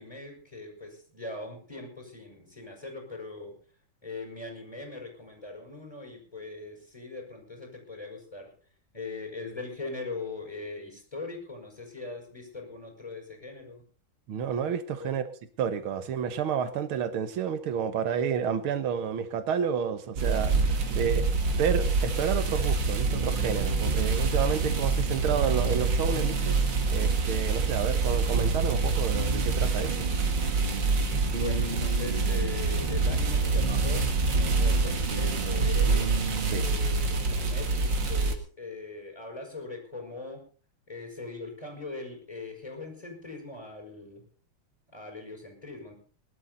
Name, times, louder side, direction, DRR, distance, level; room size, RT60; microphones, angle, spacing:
voice 1, 0.0-3.5 4.0-8.5 8.9-13.8 15.0-15.1 31.4-36.1 36.5-40.4 40.9-44.2 44.9-46.0, left 3 dB, 15° left, 2 dB, 5.3 m, -40 dB
voice 2, 14.3-15.2 15.6-21.3 21.5-26.6 26.9-30.1 36.5-36.6, right 7 dB, 80° right, 11 dB, 2.1 m, -30 dB
sound 1, 20.2-38.3, right 4 dB, 55° right, 2.5 m, -26 dB
sound 2, 23.0-37.1, right 3 dB, 25° right, 1.8 m, -35 dB
21.0 x 12.0 x 4.1 m, 0.40 s
omnidirectional pair, 2.3 m